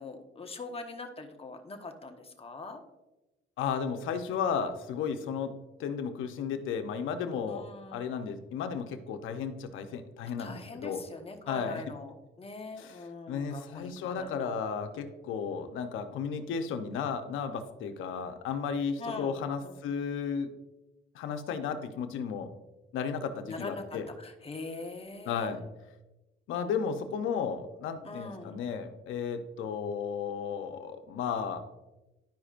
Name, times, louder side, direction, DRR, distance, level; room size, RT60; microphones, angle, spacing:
voice 1, 0.0-2.8 7.5-8.2 10.4-14.5 19.0-19.8 23.5-25.5 28.0-28.6, left 3 dB, 30° left, 4 dB, 1.1 m, -43 dB
voice 2, 3.6-5.5 5.8-11.0 11.5-11.8 12.8-20.5 21.1-22.5 22.9-24.1 25.3-25.6 26.5-31.6, left 6 dB, 85° left, 7 dB, 0.8 m, -34 dB
11.5 x 5.1 x 2.5 m, 1.0 s
cardioid pair, 90°, 20 cm